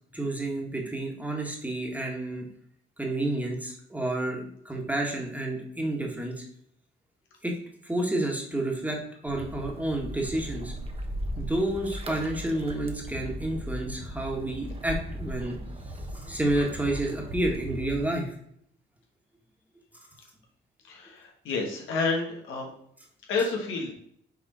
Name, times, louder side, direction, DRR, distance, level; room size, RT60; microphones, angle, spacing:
voice 1, 0.1-2.4 3.0-4.4 4.6-6.4 7.4-7.5 7.8-10.7 11.4-15.6 16.1-18.3, right 1 dB, 10° right, -1 dB, 1.7 m, -30 dB
sound 1, 9.3-18.1, right 1 dB, 30° right, 1.1 m, -37 dB
voice 2, 20.9-22.7 23.3-23.9, left 4 dB, 85° left, 0 dB, 1.4 m, -29 dB
6.0 x 3.8 x 4.2 m, 0.68 s
cardioid pair, 90°, 20 cm